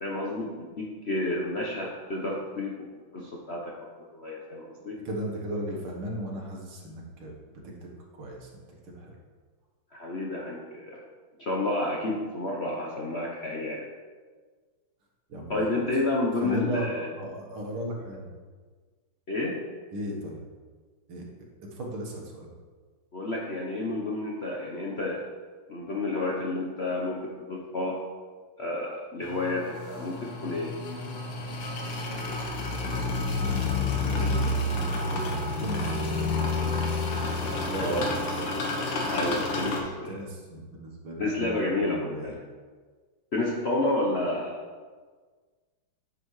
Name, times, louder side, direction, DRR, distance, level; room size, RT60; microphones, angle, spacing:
voice 1, 0.0-2.9 3.1-5.0 9.9-11.0 11.4-13.9 15.5-17.1 19.3-19.6 23.1-25.3 25.7-28.0 28.6-30.7 37.8-38.0 39.1-40.2 41.2-42.4 43.3-44.6, left 2 dB, 60° left, -3 dB, 0.7 m, -30 dB
voice 2, 5.0-7.3 7.8-8.5 8.8-9.2 15.3-15.6 16.4-18.3 19.9-20.4 21.1-21.3 21.7-22.5 33.3-37.0 37.5-38.6 39.6-42.3 44.1-44.2, equal, 90° right, -1 dB, 2.2 m, -37 dB
sound 1, 29.2-39.8, left 2 dB, 85° left, 2.0 m, -29 dB
10.0 x 6.4 x 3.2 m, 1.5 s
omnidirectional pair, 2.3 m